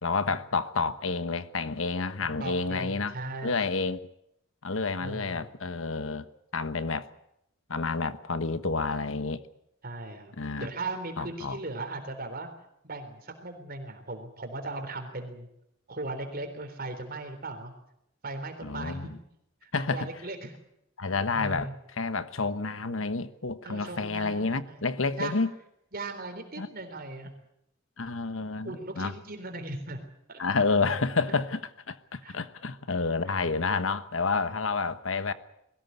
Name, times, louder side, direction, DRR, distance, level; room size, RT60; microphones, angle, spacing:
voice 1, 0.0-3.1 3.4-4.0 4.6-6.3 6.5-7.1 7.7-9.4 10.4-10.7 11.2-11.6 18.6-19.1 19.7-20.1 21.0-25.5 26.6-26.7 28.0-29.1 30.4-31.6 31.9-35.3, left 4 dB, 80° left, 12 dB, 1.2 m, -29 dB
voice 2, 2.2-3.6 5.0-5.5 9.8-10.3 10.6-12.5 12.8-15.5 15.9-17.7 18.2-19.2 19.6-20.5 21.3-21.7 23.6-24.9 25.2-25.4 25.9-27.3 28.6-30.0 30.3-30.4 31.3-31.4 32.2-32.4, right 2 dB, 50° right, 6 dB, 3.8 m, -38 dB
21.5 x 17.5 x 9.5 m, 0.78 s
head